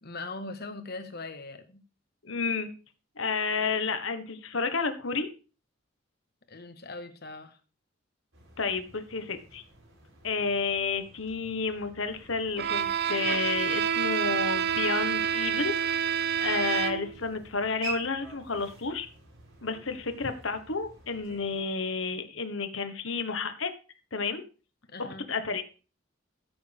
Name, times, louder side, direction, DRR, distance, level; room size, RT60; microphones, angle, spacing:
voice 1, 0.0-1.8 6.5-7.6 24.9-25.3, left 3 dB, 55° left, 8 dB, 1.5 m, -40 dB
voice 2, 2.2-2.7 3.2-5.3 8.6-9.6 10.2-19.1 19.6-23.7 24.1-24.4 25.0-25.8, left 4 dB, 70° left, 9 dB, 1.5 m, -31 dB
sound 1, 8.3-21.6, right 2 dB, 80° right, 5.3 m, -48 dB
Bowed string instrument, 12.6-17.2, right 8 dB, 55° right, 0.7 m, -28 dB
14.0 x 7.8 x 3.5 m, 0.34 s
head